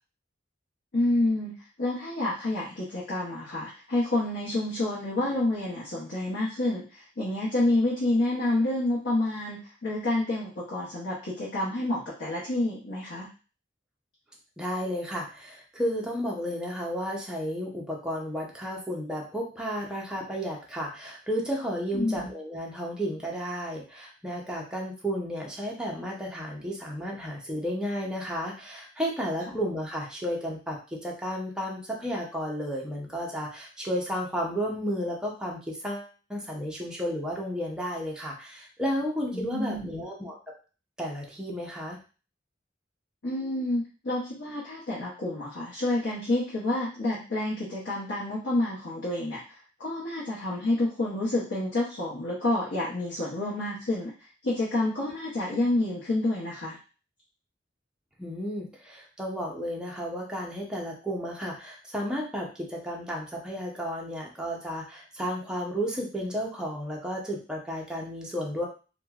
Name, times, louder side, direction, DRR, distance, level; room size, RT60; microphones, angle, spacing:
voice 1, 0.9-1.5 1.8-13.3 21.9-22.3 39.3-40.1 43.2-49.4 49.8-54.1 54.4-56.8, left 2 dB, 85° left, -7 dB, 0.8 m, -28 dB
voice 2, 14.6-40.4 41.0-42.0 58.2-68.7, equal, 5° right, -2 dB, 0.6 m, -33 dB
3.0 x 2.2 x 2.3 m, 0.35 s
head